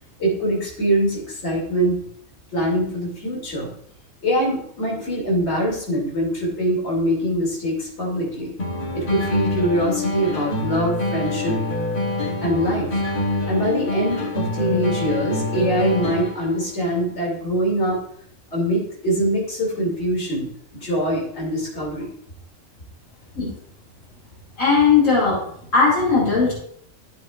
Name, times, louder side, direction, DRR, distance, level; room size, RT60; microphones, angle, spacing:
voice 1, 0.2-2.0 2.5-3.7 4.2-8.5 8.9-11.6 12.4-13.0 13.5-18.0 18.5-22.1, right 1 dB, 60° left, -3 dB, 3.1 m, -23 dB
sound 1, 8.6-16.6, left 2 dB, 45° left, 1.4 m, -25 dB
voice 2, 24.6-25.4 25.7-26.5, left 5 dB, 85° left, -5 dB, 3.0 m, -17 dB
11.5 x 7.1 x 2.5 m, 0.63 s
omnidirectional pair, 1.3 m